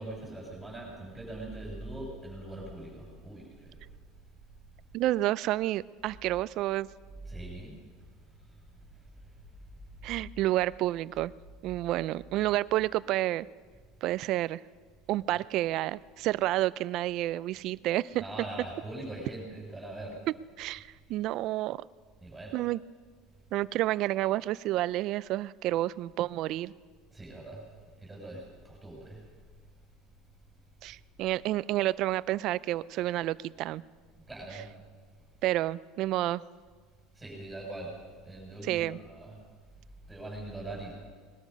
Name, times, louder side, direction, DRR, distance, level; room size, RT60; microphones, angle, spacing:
voice 1, 0.0-3.8 7.2-7.8 15.3-15.4 18.2-20.2 22.2-22.6 27.1-27.6 28.0-29.2 34.3-34.7 37.1-38.0 38.2-39.4 40.1-40.9, right 2 dB, 5° right, -2 dB, 6.6 m, -42 dB
voice 2, 4.9-6.9 10.0-11.3 11.6-13.5 14.0-14.6 15.1-18.2 20.6-21.8 22.5-22.8 23.5-26.7 30.8-33.8 35.4-36.4 38.6-39.0, right 15 dB, 55° right, 19 dB, 0.4 m, -30 dB
20.5 x 13.0 x 5.3 m, 1.5 s
supercardioid pair, 130°, 0 cm